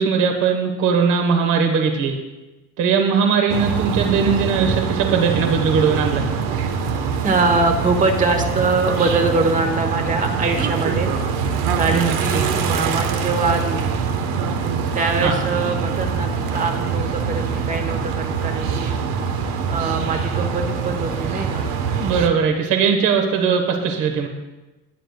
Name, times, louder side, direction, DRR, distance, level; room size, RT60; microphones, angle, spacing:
voice 1, 0.0-2.2 2.8-6.2 11.9-12.4 15.2-15.4 22.0-24.3, right 6 dB, 60° right, 4 dB, 1.3 m, -19 dB
sound 1, 3.5-22.3, right 6 dB, 80° right, 1.2 m, -24 dB
voice 2, 7.2-11.1 11.8-13.8 14.9-18.9 19.7-21.7, right 3 dB, 20° right, 5 dB, 1.1 m, -23 dB
19.0 x 9.7 x 2.3 m, 1.1 s
cardioid pair, 175°, 35 cm